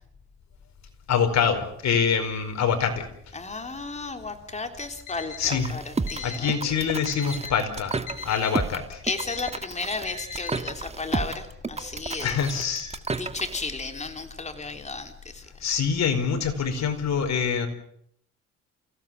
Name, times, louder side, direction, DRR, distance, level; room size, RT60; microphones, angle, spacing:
voice 1, 1.1-3.1 5.4-5.8 6.2-9.0 12.2-13.0 15.6-17.7, left 6 dB, 65° left, 7 dB, 4.8 m, -25 dB
voice 2, 3.3-6.7 9.0-12.4 13.1-15.4, left 3 dB, 25° left, 5 dB, 3.5 m, -34 dB
Alarm, 4.9-5.6 6.1-6.6 7.1-7.6 8.1-8.6 9.1-9.6 10.1-10.6, left 7 dB, 80° left, 7.0 m, -39 dB
sound 1, 5.4-13.7, right 3 dB, 20° right, 1.6 m, -32 dB
29.0 x 16.5 x 7.7 m, 0.69 s
cardioid pair, 90°, 30 cm